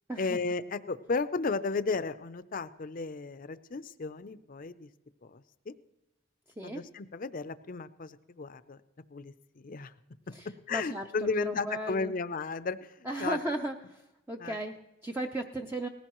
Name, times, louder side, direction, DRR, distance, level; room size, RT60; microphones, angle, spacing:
voice 1, 0.2-4.9 5.2-5.7 6.6-8.8 9.1-9.9 10.7-13.5 14.4-14.6, left 4 dB, 45° left, 13 dB, 0.5 m, -34 dB
voice 2, 10.3-12.2 13.0-15.9, right 1 dB, 10° right, 2 dB, 0.5 m, -36 dB
19.0 x 15.5 x 3.0 m, 0.97 s
head